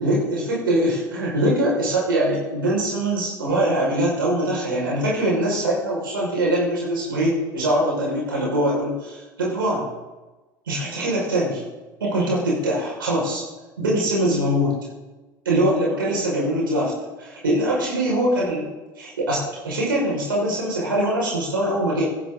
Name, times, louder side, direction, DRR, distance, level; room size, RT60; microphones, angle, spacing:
voice 1, 0.0-9.8 10.7-11.6 12.0-13.4 13.8-14.8 15.4-16.9 17.2-18.7 19.0-19.4 19.6-22.0, right 1 dB, 85° right, -4 dB, 6.0 m, -22 dB
24.5 x 11.0 x 4.1 m, 1.1 s
hypercardioid pair, 70°, 11 cm